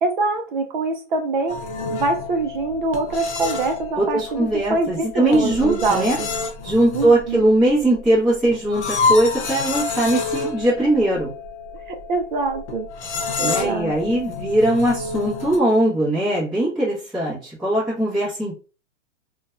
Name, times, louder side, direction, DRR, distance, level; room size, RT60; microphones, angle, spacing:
voice 1, 0.0-1.6 1.9-6.3 6.9-7.4 11.9-12.9 13.4-14.2, right 3 dB, 40° right, 0.4 m, -24 dB
sound 1, 1.5-15.6, left 4 dB, 60° left, 0.8 m, -29 dB
voice 2, 4.0-6.2 6.6-11.3 13.4-18.5, right 1 dB, ahead, 0.6 m, -20 dB
2.6 x 2.2 x 2.3 m
hypercardioid pair, 150°, 38 cm